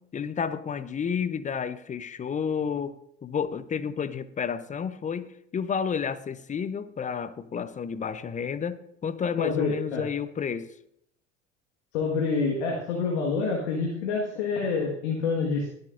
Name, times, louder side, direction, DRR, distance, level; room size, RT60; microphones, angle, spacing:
voice 1, 0.0-3.0 3.2-10.7, left 7 dB, 20° left, 15 dB, 0.7 m, -31 dB
voice 2, 9.4-10.0 11.9-15.7, left 4 dB, 65° left, -1 dB, 1.8 m, -27 dB
20.5 x 7.9 x 2.6 m, 0.74 s
figure-of-eight pair, 70°, 36 cm